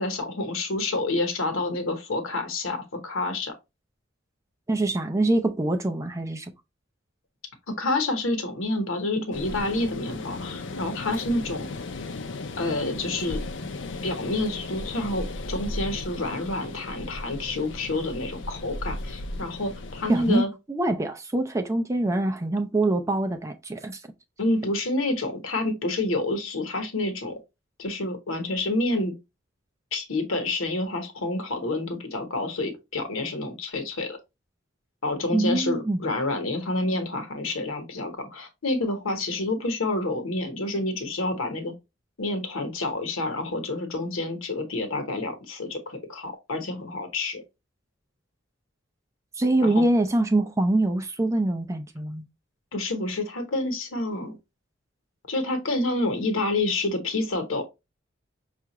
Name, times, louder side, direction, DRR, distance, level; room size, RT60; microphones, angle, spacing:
voice 1, 0.0-3.5 7.7-11.7 12.6-13.4 14.0-20.5 24.4-27.3 27.8-29.1 29.9-34.2 35.0-41.7 42.2-47.4 49.6-49.8 52.7-54.4 55.3-57.6, left 2 dB, 90° left, 1.0 m, -28 dB
voice 2, 4.7-6.5 20.1-24.0 35.3-36.0 49.4-52.2, right 2 dB, 15° right, 0.4 m, -24 dB
sound 1, 9.3-20.4, left 2 dB, 65° left, 0.5 m, -36 dB
5.6 x 2.4 x 2.9 m
head